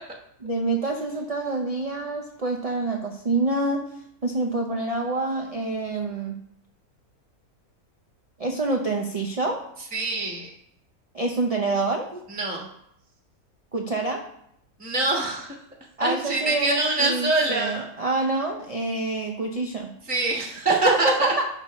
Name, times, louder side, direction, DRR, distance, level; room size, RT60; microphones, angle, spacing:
voice 1, 0.4-3.8 4.2-6.3 8.4-9.6 11.1-12.2 13.7-14.2 16.0-19.9 20.8-21.4, right 2 dB, 40° right, 1 dB, 0.5 m, -26 dB
voice 2, 9.9-10.5 12.3-12.7 14.8-15.6 16.0-17.9 20.1-21.3, right 2 dB, 5° right, -1 dB, 1.2 m, -24 dB
11.0 x 5.5 x 3.1 m, 0.73 s
omnidirectional pair, 1.6 m